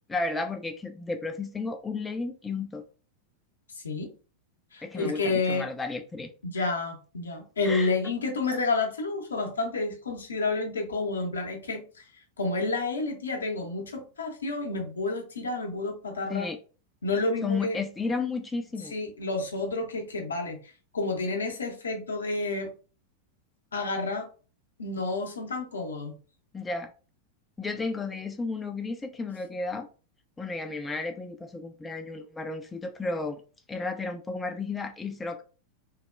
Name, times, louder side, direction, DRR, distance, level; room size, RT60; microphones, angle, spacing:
voice 1, 0.1-2.8 4.8-6.3 6.6-6.7 7.7-7.9 16.3-16.6 17.4-18.9 26.5-26.9 27.6-29.9 30.4-33.4 33.7-35.4, left 3 dB, 10° left, 0.3 m, -33 dB
voice 2, 3.7-4.1 4.7-5.7 6.5-12.0 12.4-16.5 17.0-17.8 18.9-22.7 23.7-24.3 24.8-26.1, left 3 dB, 70° left, 0.6 m, -30 dB
3.1 x 2.0 x 2.3 m
figure-of-eight pair, 90°, 0 cm